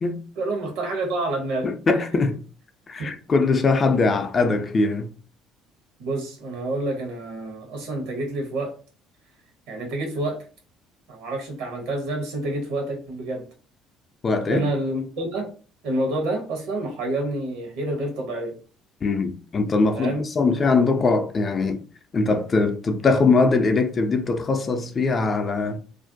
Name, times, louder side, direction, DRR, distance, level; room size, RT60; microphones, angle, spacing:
voice 1, 0.4-2.1 3.0-3.2 6.0-8.7 9.7-10.4 11.1-13.5 14.5-15.5 15.8-18.5 19.9-20.2, right 2 dB, 70° right, 0.9 m, -28 dB
voice 2, 1.6-2.4 2.9-5.1 14.2-14.6 19.0-21.8 22.1-25.8, left 3 dB, 35° left, 0.4 m, -21 dB
2.5 x 2.1 x 2.6 m
hypercardioid pair, 55°, 0 cm